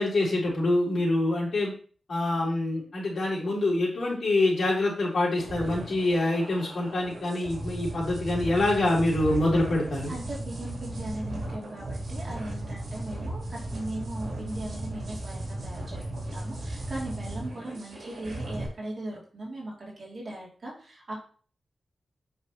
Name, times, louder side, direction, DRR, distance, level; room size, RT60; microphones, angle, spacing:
voice 1, 0.0-1.7 2.1-10.1, left 2 dB, 70° left, -6 dB, 3.8 m, -25 dB
sound 1, 5.4-18.7, right 1 dB, 65° right, 3.2 m, -36 dB
voice 2, 10.1-21.1, right 1 dB, 50° right, -3 dB, 2.8 m, -38 dB
8.4 x 5.8 x 3.1 m, 0.41 s
wide cardioid pair, 125°, 0 cm